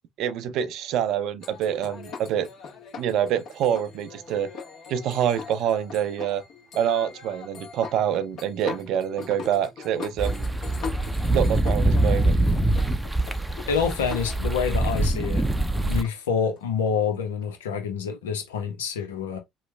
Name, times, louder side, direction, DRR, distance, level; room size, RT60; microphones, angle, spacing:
voice 1, 0.2-2.5 3.0-4.5 4.9-6.4 6.8-10.5 11.3-12.4, right 9 dB, 65° right, 0.5 m, -26 dB
sound 1, 1.4-17.7, left 5 dB, 60° left, 1.4 m, -41 dB
sound 2, 10.2-16.0, right 1 dB, 10° right, 0.6 m, -24 dB
voice 2, 13.7-15.4 15.9-19.4, left 6 dB, 85° left, 0.8 m, -27 dB
3.1 x 2.2 x 3.2 m
hypercardioid pair, 60°, 0 cm